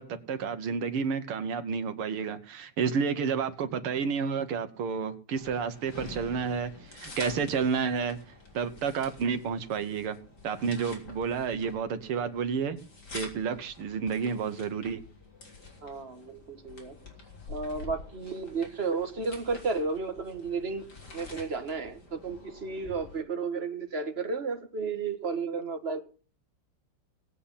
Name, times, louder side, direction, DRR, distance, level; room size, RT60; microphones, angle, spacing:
voice 1, 0.0-8.2 8.5-10.2 10.4-12.8 13.1-15.0, right 6 dB, 85° right, 9 dB, 2.2 m, -30 dB
sound 1, 5.4-23.2, left 3 dB, 50° left, 4.1 m, -48 dB
voice 2, 15.8-17.0 17.5-20.8 21.1-26.0, right 4 dB, 30° right, 6 dB, 1.7 m, -33 dB
18.5 x 8.6 x 5.7 m, 0.39 s
omnidirectional pair, 2.4 m